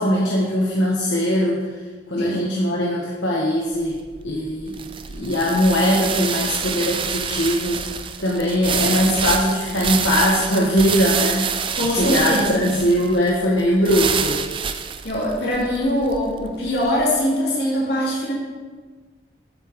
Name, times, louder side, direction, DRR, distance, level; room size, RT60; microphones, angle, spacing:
voice 1, 0.0-1.7 2.1-4.8 5.1-7.9 8.2-14.4, equal, 80° left, -4 dB, 1.4 m, -21 dB
voice 2, 2.2-2.5 11.8-12.7 15.0-18.3, equal, 65° left, -5 dB, 3.2 m, -22 dB
sound 1, 3.7-17.0, right 7 dB, 25° right, 0.4 m, -27 dB
11.5 x 8.5 x 3.7 m, 1.4 s
head